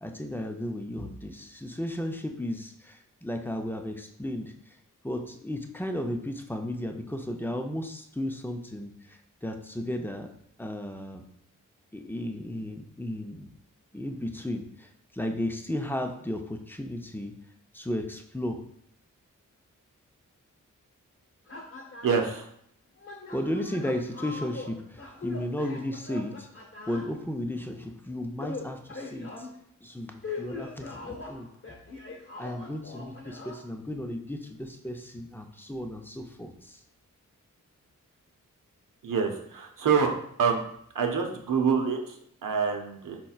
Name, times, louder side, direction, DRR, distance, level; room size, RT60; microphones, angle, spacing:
voice 1, 0.0-4.5 5.0-10.3 10.6-11.2 11.9-13.5 13.9-17.3 17.7-18.6 23.3-29.5 29.8-31.5 32.4-36.8, left 1 dB, 5° left, 4 dB, 0.6 m, -34 dB
sound 1, 21.5-22.3 23.0-27.1 28.4-29.5 30.2-33.6, left 3 dB, 40° left, 0.9 m, -41 dB
voice 2, 22.0-22.5 39.0-40.1 40.4-40.6 40.9-43.2, right 6 dB, 80° right, 3 dB, 0.8 m, -26 dB
4.4 x 4.3 x 2.4 m, 0.69 s
cardioid pair, 60°, 32 cm